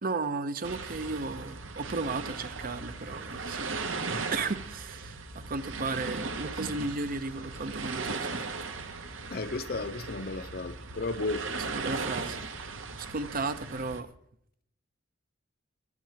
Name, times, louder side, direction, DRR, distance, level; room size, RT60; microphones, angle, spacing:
voice 1, 0.0-3.9 4.3-8.5 11.7-12.5 13.0-14.1, right 3 dB, 50° right, 0.8 m, -34 dB
sound 1, 0.6-14.0, right 3 dB, 90° right, 1.3 m, -37 dB
voice 2, 9.3-11.5, left 3 dB, 50° left, 0.6 m, -34 dB
13.0 x 6.1 x 8.7 m
head